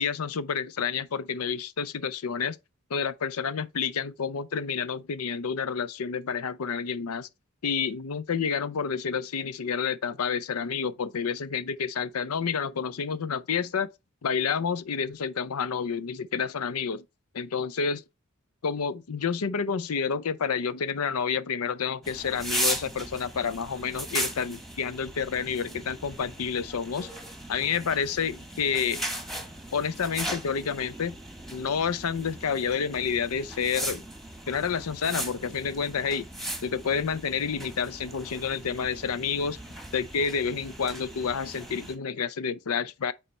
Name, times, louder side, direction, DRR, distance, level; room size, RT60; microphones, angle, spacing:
voice 1, 0.0-2.6 2.9-7.3 7.6-13.9 14.2-17.0 17.3-18.0 18.6-27.1 27.5-29.0 29.7-31.2 31.5-34.0 34.5-36.3 36.6-39.6 39.9-43.1, left 6 dB, 80° left, 0.6 m, -29 dB
sound 1, 22.0-41.9, right 1 dB, ahead, 1.2 m, -37 dB
9.3 x 3.3 x 4.3 m
head